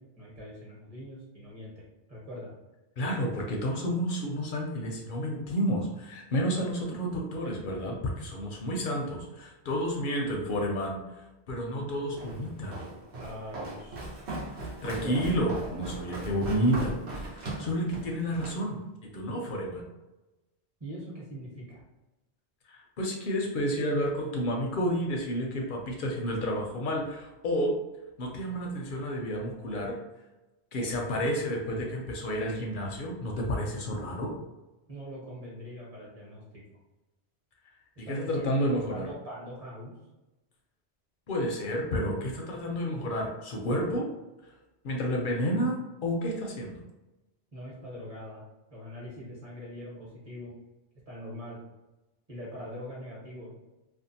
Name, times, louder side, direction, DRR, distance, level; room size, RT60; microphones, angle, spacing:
voice 1, 0.0-2.5 13.2-14.1 14.9-15.2 20.8-21.8 34.9-36.4 38.1-38.5 38.9-39.9 47.5-48.4 48.7-50.5 51.1-51.6 52.3-53.7, equal, 35° right, -6 dB, 1.0 m, -42 dB
voice 2, 3.0-11.0 11.5-12.8 14.8-16.9 17.3-18.8 19.1-19.8 22.7-27.7 28.2-30.0 30.7-34.3 38.0-39.1 41.3-44.1 44.8-45.8 46.0-46.8, equal, 60° left, 0 dB, 0.6 m, -30 dB
Walk footsteps, 12.2-18.6, right 2 dB, 85° right, 1.0 m, -38 dB
2.5 x 2.2 x 2.7 m, 1.0 s
omnidirectional pair, 1.1 m